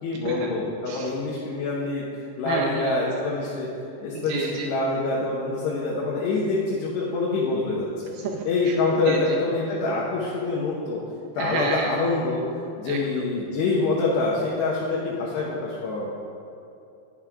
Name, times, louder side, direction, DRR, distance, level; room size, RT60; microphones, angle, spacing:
voice 1, 0.0-2.0 2.4-3.7 4.0-7.9 8.4-11.0 11.4-12.4 12.8-16.1, left 3 dB, 75° left, -5 dB, 3.1 m, -25 dB
voice 2, 2.5-3.0 4.1-4.7 8.1-8.8 9.1-9.4 11.4-11.9 12.9-13.0, right 4 dB, 90° right, 0 dB, 2.1 m, -30 dB
21.5 x 7.5 x 2.4 m, 2.7 s
omnidirectional pair, 5.2 m